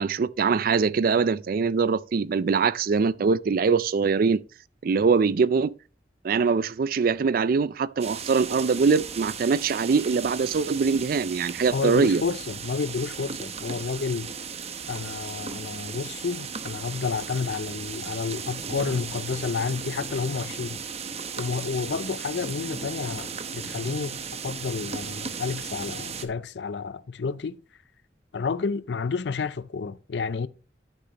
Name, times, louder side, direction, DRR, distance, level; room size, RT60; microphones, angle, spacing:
voice 1, 0.0-4.4 4.8-5.7 6.2-12.2, right 5 dB, 55° right, 0.4 m, -23 dB
sound 1, 8.0-26.3, right 6 dB, 35° right, 0.8 m, -36 dB
voice 2, 11.7-14.3 14.9-20.8 21.4-27.6 28.3-30.5, left 5 dB, 80° left, 0.5 m, -30 dB
11.5 x 6.6 x 2.9 m
head